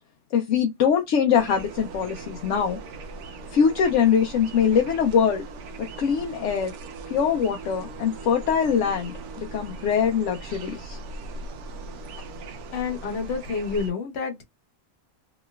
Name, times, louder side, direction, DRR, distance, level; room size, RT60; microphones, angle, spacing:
voice 1, 0.3-2.8 3.5-5.4 5.8-6.7 7.1-11.0, left 7 dB, 75° left, 0.9 m, -23 dB
sound 1, 1.3-13.9, right 3 dB, 70° right, 0.9 m, -39 dB
voice 2, 12.7-14.4, left 5 dB, 60° left, 1.2 m, -29 dB
3.1 x 2.9 x 2.2 m
omnidirectional pair, 1.3 m